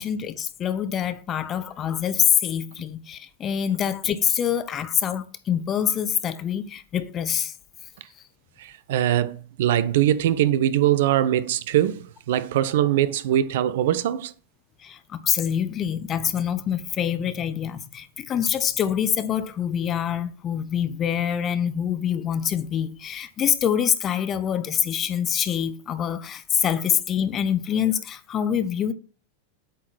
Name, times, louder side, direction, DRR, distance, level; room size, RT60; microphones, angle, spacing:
voice 1, 0.0-7.5 14.8-28.9, left 9 dB, 30° left, 0.7 m, -25 dB
voice 2, 8.6-14.3, right 12 dB, 55° right, 0.5 m, -22 dB
8.3 x 3.8 x 6.1 m
figure-of-eight pair, 90°, 0 cm